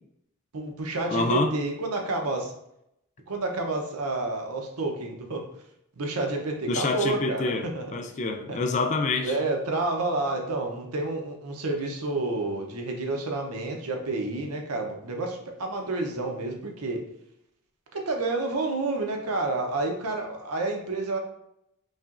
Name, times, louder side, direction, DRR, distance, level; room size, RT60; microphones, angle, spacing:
voice 1, 0.5-2.5 3.3-5.5 6.0-8.0 8.5-8.6 9.2-17.0 17.9-21.2, right 2 dB, 85° right, 2 dB, 0.7 m, -29 dB
voice 2, 1.1-1.5 6.7-9.3, left 3 dB, 35° left, 5 dB, 0.3 m, -27 dB
4.0 x 2.9 x 2.4 m, 0.78 s
head